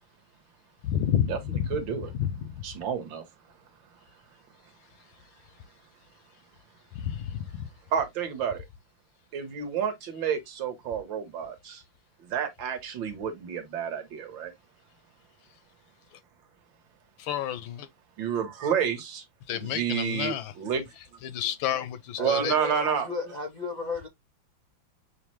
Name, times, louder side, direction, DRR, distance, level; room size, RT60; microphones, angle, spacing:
voice 1, 0.8-1.8 2.2-2.6 6.9-7.7 16.1-16.2 17.2-17.9 19.5-20.5 21.2-22.5, left 10 dB, 80° left, 1.4 m, -30 dB
voice 2, 1.7-2.1 2.6-3.2 7.9-8.6 9.3-11.8 12.2-14.5 18.2-19.2 19.5-20.8 22.2-23.1, right 8 dB, 75° right, 1.7 m, -30 dB
voice 3, 22.2-24.1, left 2 dB, 60° left, 0.4 m, -34 dB
5.8 x 2.0 x 3.0 m
omnidirectional pair, 2.2 m